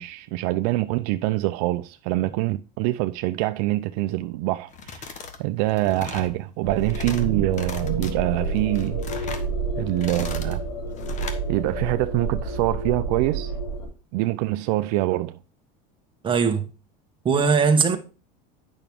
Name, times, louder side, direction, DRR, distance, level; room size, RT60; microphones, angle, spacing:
voice 1, 0.0-9.4 9.8-10.6 11.5-13.5 14.1-15.4, right 17 dB, 70° right, 0.5 m, -25 dB
sound 1, 4.7-5.4 5.7-6.3 6.8-7.2 7.5-8.1 8.6-9.5 9.9-10.6 11.0-11.4, left 5 dB, 35° left, 1.3 m, -37 dB
sound 2, 6.6-13.8, right 3 dB, 80° left, 4.5 m, -29 dB
voice 2, 16.2-16.7 17.2-18.0, right 5 dB, 25° right, 1.3 m, -19 dB
8.9 x 6.0 x 3.5 m
supercardioid pair, 115°, 21 cm